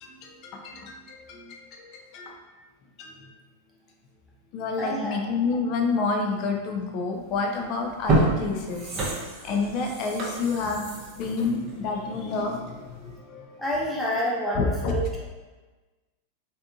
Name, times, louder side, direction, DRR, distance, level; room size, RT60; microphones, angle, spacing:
voice 1, 0.0-2.3 3.0-3.3 4.5-8.9 9.4-13.6 14.6-15.0, left 4 dB, 40° left, 2 dB, 0.5 m, -29 dB
voice 2, 4.8-5.2 13.6-15.2, equal, ahead, -6 dB, 0.9 m, -28 dB
sound 1, 7.3-7.4 7.9-12.6 13.0-13.1, right 2 dB, 35° right, 0.7 m, -28 dB
3.4 x 2.8 x 2.3 m, 1.3 s
figure-of-eight pair, 90°, 0 cm